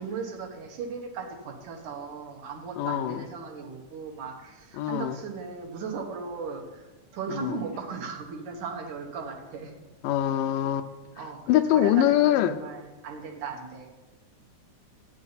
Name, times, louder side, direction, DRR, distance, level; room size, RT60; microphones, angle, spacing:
voice 1, 0.0-9.7 11.2-13.9, right 5 dB, 70° right, 1 dB, 2.7 m, -37 dB
voice 2, 2.8-3.2 4.8-5.2 7.4-7.5 10.0-10.9 11.5-12.6, left 11 dB, 85° left, 7 dB, 2.2 m, -23 dB
15.0 x 9.3 x 4.1 m, 1.1 s
omnidirectional pair, 3.8 m